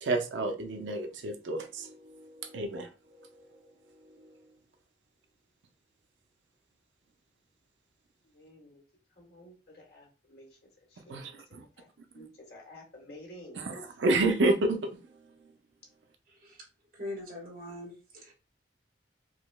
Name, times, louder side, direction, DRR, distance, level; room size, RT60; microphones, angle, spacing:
voice 1, 0.0-3.5 4.0-4.4 11.1-11.6 12.1-12.2 13.6-15.5, right 2 dB, 80° right, 0.5 m, -31 dB
voice 2, 8.2-8.8 9.1-13.6, left 1 dB, 55° left, 1.2 m, -52 dB
voice 3, 16.3-16.6 16.9-18.3, left 1 dB, 50° right, 1.4 m, -42 dB
4.7 x 2.0 x 2.3 m
head